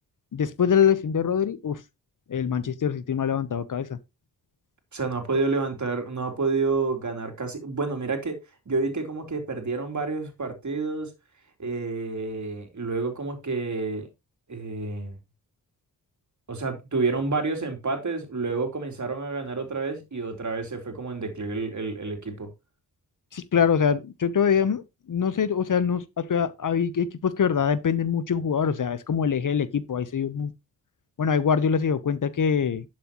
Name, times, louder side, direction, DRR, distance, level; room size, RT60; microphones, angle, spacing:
voice 1, 0.3-1.8 2.3-4.0 23.3-30.5 31.2-32.8, left 7 dB, 55° left, 1.0 m, -24 dB
voice 2, 4.9-8.4 8.7-11.1 11.6-14.1 14.5-15.2 16.5-22.5, right 3 dB, 50° right, 3.5 m, -29 dB
11.5 x 7.6 x 3.0 m
cardioid pair, 50°, 38 cm